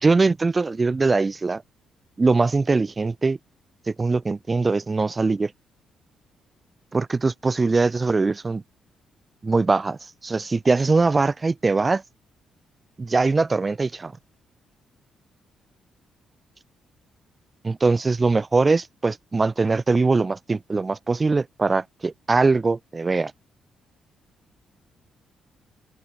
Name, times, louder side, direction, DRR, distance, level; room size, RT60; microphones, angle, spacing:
voice 1, 0.0-1.6 2.2-3.4 3.9-5.5 6.9-8.6 9.4-12.0 13.0-14.1 17.6-23.3, right 3 dB, 30° right, 3.6 m, -22 dB
open air
cardioid pair, 80°, 0 cm